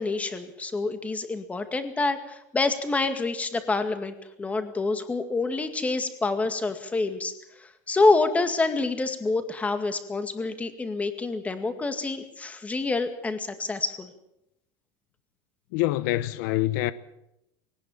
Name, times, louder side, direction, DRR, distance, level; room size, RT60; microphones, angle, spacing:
voice 1, 0.0-7.3 7.6-14.1, left 3 dB, 15° left, 2.1 m, -27 dB
voice 2, 15.7-16.9, left 16 dB, 75° left, 0.9 m, -25 dB
20.0 x 18.5 x 7.3 m
supercardioid pair, 140°, 10 cm